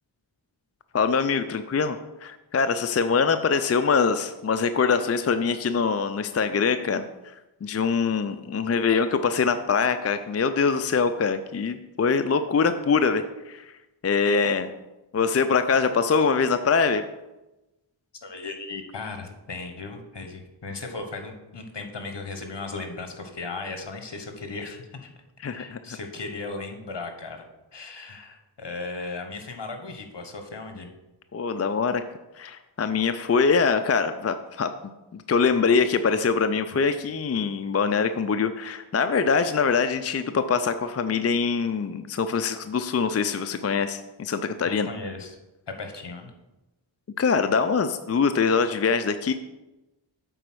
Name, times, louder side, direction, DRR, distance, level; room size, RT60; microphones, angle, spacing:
voice 1, 0.9-7.0 7.6-13.7 14.0-14.7 15.1-17.0 25.4-25.8 31.3-32.0 32.4-34.7 35.1-44.9 47.2-49.3, left 5 dB, 35° left, 9 dB, 0.4 m, -23 dB
voice 2, 18.2-25.1 25.5-27.5 27.7-30.9 44.7-45.4 45.7-46.3, left 3 dB, 60° left, 6 dB, 1.2 m, -36 dB
8.0 x 4.1 x 6.1 m, 1.0 s
wide cardioid pair, 75°, 48 cm